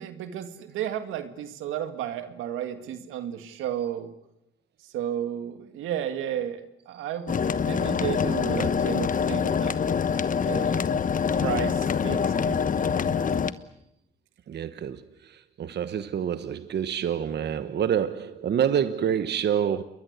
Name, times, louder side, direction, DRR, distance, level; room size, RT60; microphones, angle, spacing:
voice 1, 0.0-4.1 4.9-9.8 10.4-10.9 11.4-12.9, right 10 dB, 90° right, 2.1 m, -33 dB
sound 1, 7.3-13.5, left 6 dB, 40° left, 1.1 m, -25 dB
voice 2, 14.5-19.8, right 9 dB, 60° right, 1.2 m, -27 dB
29.0 x 22.0 x 8.2 m
cardioid pair, 90°, 20 cm